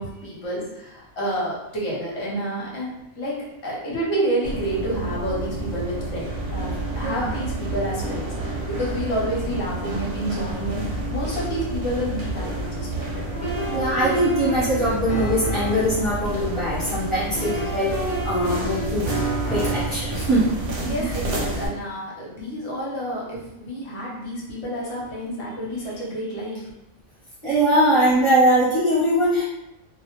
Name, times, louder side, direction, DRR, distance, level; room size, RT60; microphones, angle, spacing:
voice 1, 0.0-13.3 20.9-26.7, right 1 dB, 70° left, -5 dB, 1.0 m, -29 dB
sound 1, 4.4-21.7, right 2 dB, 60° right, 0.7 m, -30 dB
sound 2, 13.3-16.0 17.3-20.0, right 1 dB, 45° left, 0.8 m, -29 dB
voice 2, 13.7-17.9 18.2-19.2 19.5-21.2 27.4-29.4, right 1 dB, 30° right, -10 dB, 0.8 m, -21 dB
2.2 x 2.1 x 2.8 m, 0.85 s
omnidirectional pair, 1.2 m